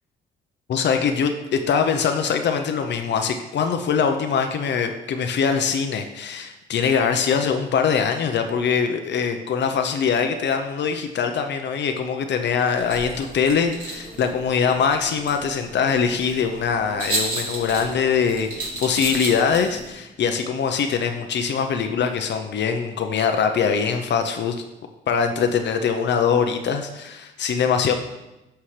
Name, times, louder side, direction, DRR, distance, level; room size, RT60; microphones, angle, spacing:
voice 1, 0.7-24.6 25.1-27.9, left 6 dB, 60° left, 6 dB, 0.8 m, -22 dB
sound 1, 12.7-19.9, right 2 dB, 45° right, 2.9 m, -33 dB
11.5 x 5.8 x 3.3 m, 0.99 s
cardioid pair, 90°, 20 cm